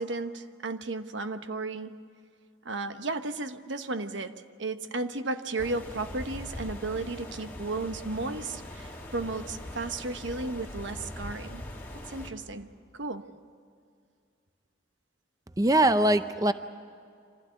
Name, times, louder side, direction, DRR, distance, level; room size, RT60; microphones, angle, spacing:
voice 1, 0.0-2.0 2.6-11.6 12.1-13.3, right 3 dB, 85° right, 9 dB, 1.1 m, -34 dB
sound 1, 5.6-12.3, left 1 dB, 10° left, 2.3 m, -41 dB
voice 2, 15.6-16.5, right 1 dB, 20° right, 10 dB, 0.5 m, -22 dB
25.5 x 16.0 x 9.9 m, 2.3 s
head